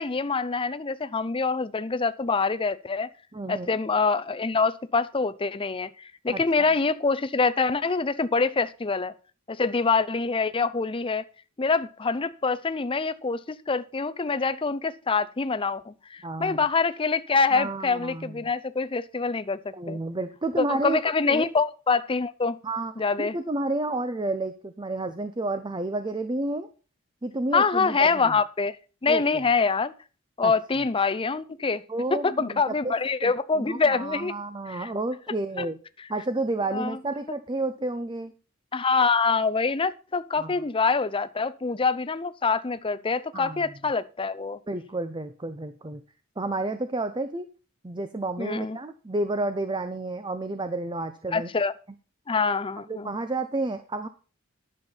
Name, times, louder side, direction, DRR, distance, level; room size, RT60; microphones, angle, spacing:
voice 1, 0.0-3.1 3.5-9.1 9.5-11.2 11.6-20.0 20.6-22.6 23.0-23.4 27.5-28.8 29.0-29.9 30.4-31.8 32.1-34.3 34.7-34.9 35.6-35.7 36.6-37.0 38.7-44.6 48.4-48.8 51.3-51.7 52.3-53.1, left 4 dB, 25° left, 0.6 m, -25 dB
voice 2, 3.3-3.7 6.3-6.7 16.2-16.6 17.5-18.5 19.7-21.0 21.3-21.4 22.6-22.9 23.2-26.7 27.2-28.4 29.1-29.2 30.4-30.5 31.9-32.9 33.2-35.8 36.1-38.3 40.4-40.5 43.3-43.7 44.7-46.0 46.4-47.5 47.8-51.5 52.9-54.1, right 2 dB, 20° right, 0.7 m, -31 dB
11.0 x 7.2 x 5.8 m
head